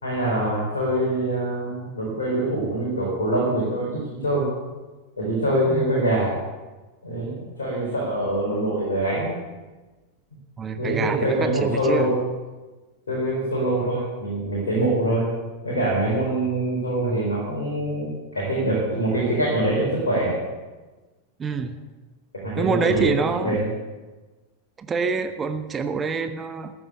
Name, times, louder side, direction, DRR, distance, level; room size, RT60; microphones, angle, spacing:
voice 1, 0.0-4.5 5.2-6.3 7.0-9.3 10.7-12.2 13.1-15.2 15.6-20.4 22.4-23.1 23.4-23.7, right 1 dB, 70° left, -5 dB, 4.1 m, -24 dB
voice 2, 10.6-12.1 21.4-21.8 22.6-23.6 24.8-26.7, right 5 dB, 20° right, 9 dB, 0.8 m, -26 dB
14.0 x 7.3 x 8.3 m, 1.2 s
figure-of-eight pair, 90°, 0 cm